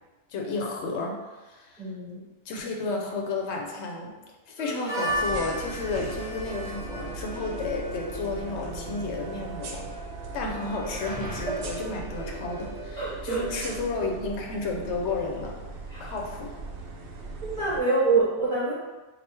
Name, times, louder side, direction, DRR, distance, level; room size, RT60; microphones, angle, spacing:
voice 1, 0.3-1.8 2.5-4.1 4.5-9.9 10.3-15.6 16.0-16.6, left 3 dB, 80° left, 0 dB, 0.9 m, -32 dB
voice 2, 1.8-2.2 11.5-11.6 13.0-13.4 15.9-16.1 17.4-18.7, right 3 dB, 30° right, -9 dB, 0.8 m, -26 dB
Harmonica, 4.6-14.2, right 1 dB, 5° right, 0.5 m, -38 dB
sound 1, 5.1-17.8, right 3 dB, 65° right, 0.7 m, -39 dB
sound 2, 11.0-13.5, right 1 dB, 20° left, 1.2 m, -43 dB
3.3 x 2.3 x 4.3 m, 1.2 s
omnidirectional pair, 1.1 m